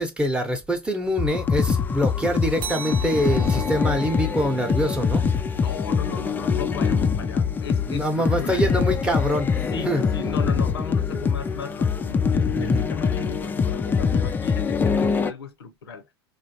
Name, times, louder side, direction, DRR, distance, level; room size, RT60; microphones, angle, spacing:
voice 1, 0.0-5.2 7.9-10.0 12.5-12.9, equal, 10° right, 0.8 m, -25 dB
sound 1, 1.2-15.3, left 6 dB, 15° left, 0.3 m, -24 dB
sound 2, 2.6-7.5, right 3 dB, 35° right, 0.8 m, -38 dB
voice 2, 5.6-8.7 9.7-16.1, left 5 dB, 80° left, 0.7 m, -36 dB
3.2 x 2.6 x 2.8 m
hypercardioid pair, 90°, 13 cm